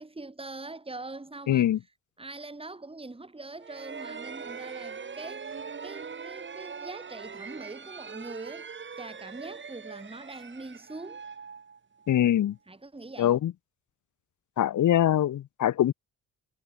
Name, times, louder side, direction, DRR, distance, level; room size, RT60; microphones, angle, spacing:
voice 1, 0.0-1.7 2.2-8.7 9.0-11.2 12.7-13.4, right 2 dB, 15° right, 2.3 m, -43 dB
voice 2, 1.5-1.8 12.1-12.6 13.2-13.5 14.6-15.9, left 11 dB, 55° left, 0.7 m, -23 dB
sound 1, 3.6-12.3, right 5 dB, 30° right, 1.1 m, -42 dB
supercardioid pair, 60°, 36 cm